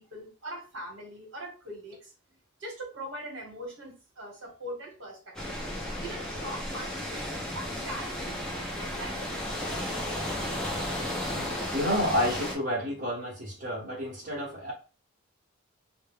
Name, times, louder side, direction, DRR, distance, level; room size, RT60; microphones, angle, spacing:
voice 1, 0.0-2.1 2.6-5.6 6.0-10.3, right 1 dB, 65° right, 1.1 m, -42 dB
sound 1, 5.3-12.5, left 1 dB, 5° left, 0.6 m, -34 dB
voice 2, 11.3-14.7, equal, 40° right, 0.9 m, -30 dB
2.2 x 2.2 x 3.3 m
head